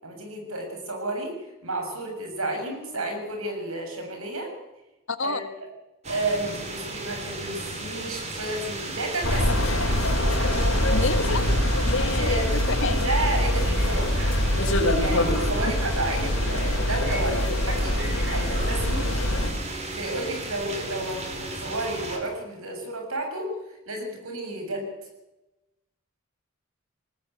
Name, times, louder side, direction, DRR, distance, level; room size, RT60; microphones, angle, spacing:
voice 1, 0.0-4.6 5.2-5.5 6.1-10.5 12.0-14.2 15.0-19.1 19.9-24.9, right 2 dB, 85° right, 4 dB, 7.2 m, -32 dB
voice 2, 5.1-5.4 10.9-11.4 11.8-12.9 15.6-15.7, left 3 dB, 65° left, 10 dB, 1.6 m, -29 dB
sound 1, 6.0-22.2, right 2 dB, 30° right, 3.8 m, -35 dB
sound 2, 9.2-19.5, left 1 dB, 80° left, 5.6 m, -24 dB
sound 3, 13.2-19.9, right 2 dB, 50° right, 5.9 m, -41 dB
20.5 x 19.0 x 8.1 m, 0.99 s
head